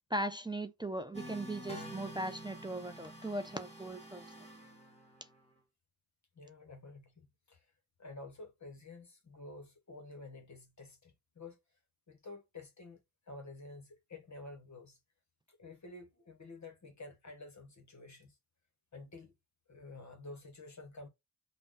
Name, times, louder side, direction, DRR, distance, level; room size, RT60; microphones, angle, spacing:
voice 1, 0.1-4.3, right 1 dB, 10° right, 0.4 m, -38 dB
sound 1, 1.1-5.4, equal, 15° left, 1.2 m, -48 dB
voice 2, 6.4-7.6 8.0-11.6 12.1-13.0 13.3-15.0 15.5-18.3 18.9-19.3 19.7-21.1, left 2 dB, 45° left, 1.1 m, -50 dB
5.5 x 2.1 x 2.5 m
wide cardioid pair, 115°, 40 cm